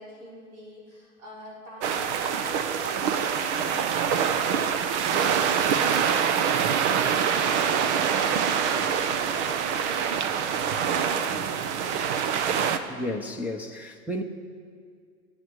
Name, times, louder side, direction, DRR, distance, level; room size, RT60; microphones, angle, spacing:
voice 1, 0.0-12.4, equal, 80° right, -4 dB, 4.8 m, -43 dB
sound 1, 1.8-12.8, right 7 dB, 55° right, 1.1 m, -25 dB
voice 2, 12.9-14.2, left 1 dB, 5° right, 4 dB, 0.8 m, -32 dB
23.5 x 8.3 x 4.8 m, 2.1 s
hypercardioid pair, 125°, 42 cm